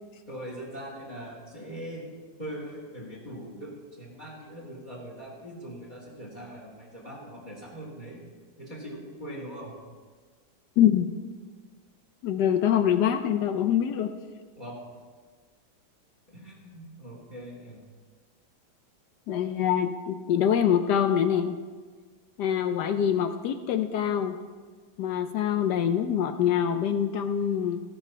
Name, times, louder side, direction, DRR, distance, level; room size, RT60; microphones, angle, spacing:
voice 1, 0.3-2.0 2.4-8.2 8.6-9.7 14.6-14.8 16.3-17.8, right 1 dB, 25° left, -4 dB, 2.2 m, -41 dB
voice 2, 10.8-11.1 12.2-14.1 19.3-21.6 22.4-24.3 25.0-27.8, left 9 dB, 70° left, 8 dB, 1.0 m, -24 dB
16.5 x 5.7 x 5.6 m, 1.5 s
omnidirectional pair, 2.2 m